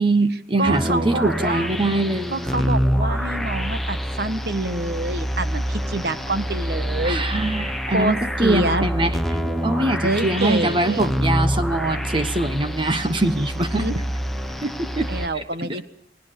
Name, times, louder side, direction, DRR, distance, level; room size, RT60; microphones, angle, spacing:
voice 1, 0.0-2.7 7.0-9.2 9.6-13.9 14.6-15.1 15.3-15.8, right 2 dB, 25° right, 9 dB, 1.1 m, -23 dB
voice 2, 0.6-1.7 2.3-7.3 7.9-8.8 10.0-11.1 13.8-14.0 15.1-15.8, right 2 dB, 60° right, 10 dB, 1.5 m, -26 dB
sound 1, 0.7-15.3, equal, ahead, 1.0 m, -26 dB
28.5 x 18.5 x 6.8 m, 0.81 s
head